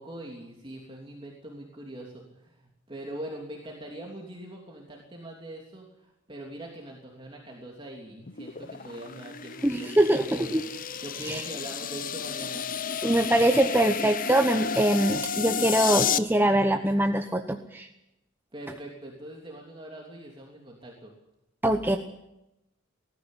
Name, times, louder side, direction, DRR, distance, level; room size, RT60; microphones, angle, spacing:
voice 1, 0.0-12.6 18.5-21.1, right 1 dB, 25° right, -1 dB, 3.2 m, -42 dB
sound 1, 8.2-16.2, left 7 dB, 45° left, 0.8 m, -31 dB
voice 2, 9.6-10.6 11.3-11.4 13.0-17.9 21.6-22.0, right 1 dB, 10° right, 5 dB, 1.0 m, -23 dB
20.0 x 14.5 x 9.9 m, 0.88 s
head